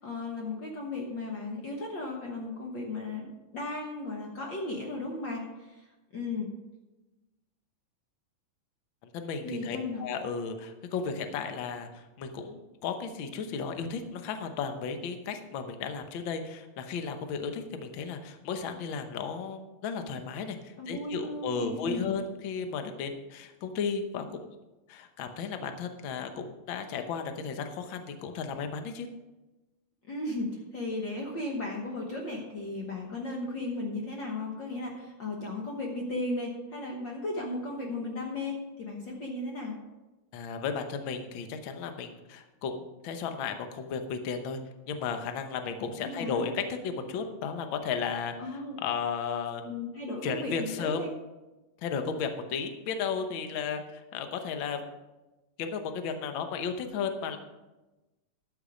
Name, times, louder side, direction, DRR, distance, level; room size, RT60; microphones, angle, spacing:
voice 1, 0.0-5.9 6.1-6.5 9.4-10.0 20.8-22.1 30.1-39.7 46.0-46.4 48.4-48.8 49.6-51.1, left 2 dB, 55° left, -1 dB, 1.4 m, -35 dB
voice 2, 9.1-24.5 24.9-29.1 40.3-44.6 44.9-49.6 50.2-51.0 51.8-54.9 55.6-57.4, left 6 dB, 75° left, 7 dB, 1.1 m, -34 dB
12.5 x 7.0 x 5.1 m, 1.1 s
omnidirectional pair, 3.5 m